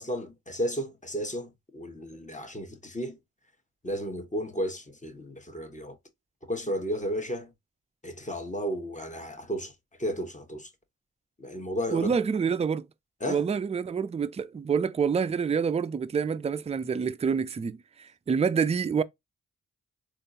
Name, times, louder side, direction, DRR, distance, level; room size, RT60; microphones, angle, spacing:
voice 1, 0.0-3.2 3.8-6.0 6.5-7.5 8.0-9.7 10.0-10.7 11.4-12.1 13.2-13.4, equal, 20° left, 1.1 m, -33 dB
voice 2, 11.9-12.9 13.3-19.0, right 6 dB, 20° right, 0.3 m, -27 dB
3.6 x 2.5 x 2.6 m
cardioid pair, 45°, 34 cm